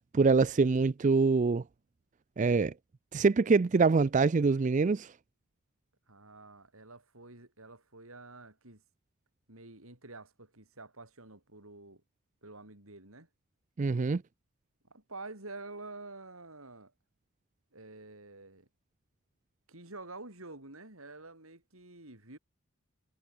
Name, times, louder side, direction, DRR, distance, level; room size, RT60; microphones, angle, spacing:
voice 1, 0.1-1.6 2.4-2.7 3.1-5.1 13.8-14.2, right 4 dB, 35° right, 0.4 m, -25 dB
voice 2, 6.1-8.8 9.5-12.0 12.4-13.3 14.8-16.9 17.7-18.7 19.7-22.4, right 2 dB, 80° right, 6.4 m, -48 dB
head